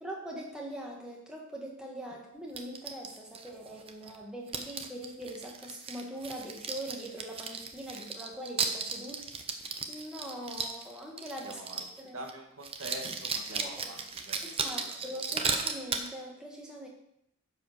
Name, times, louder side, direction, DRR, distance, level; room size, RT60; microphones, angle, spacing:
voice 1, 0.0-9.4 9.9-12.2 13.5-13.9 14.6-16.9, right 1 dB, 5° right, -2 dB, 1.5 m, -42 dB
sound 1, 2.5-4.2 4.5-12.0 12.3-12.4 12.6-16.1, right 5 dB, 25° right, 0.7 m, -36 dB
voice 2, 11.4-15.1, right 1 dB, 75° right, 1 dB, 1.8 m, -45 dB
10.5 x 5.0 x 6.6 m, 0.76 s
head